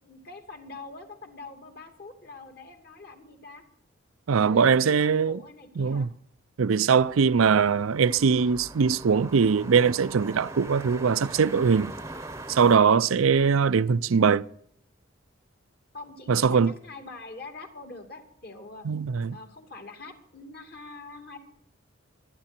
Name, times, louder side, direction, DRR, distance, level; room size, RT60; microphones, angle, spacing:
voice 1, 0.0-3.6 4.5-6.1 13.3-13.5 15.9-18.9 19.3-21.4, left 3 dB, 50° left, 2.5 m, -44 dB
voice 2, 4.3-5.4 5.8-6.1 6.6-11.9 12.5-14.5 16.3-16.7 18.9-19.4, right 6 dB, 90° right, 0.5 m, -21 dB
sound 1, 7.0-12.8, right 2 dB, 15° right, 0.8 m, -41 dB
23.5 x 11.0 x 4.4 m
head